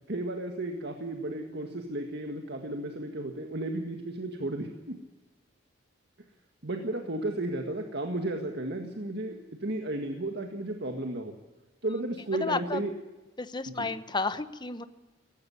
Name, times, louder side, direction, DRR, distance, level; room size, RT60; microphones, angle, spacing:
voice 1, 0.1-5.0 6.6-11.4 11.8-12.9 13.7-13.9, right 1 dB, 60° right, 4 dB, 1.9 m, -34 dB
voice 2, 12.4-12.8 13.4-14.9, left 3 dB, 25° left, 12 dB, 1.0 m, -32 dB
18.5 x 16.0 x 9.7 m, 1.2 s
head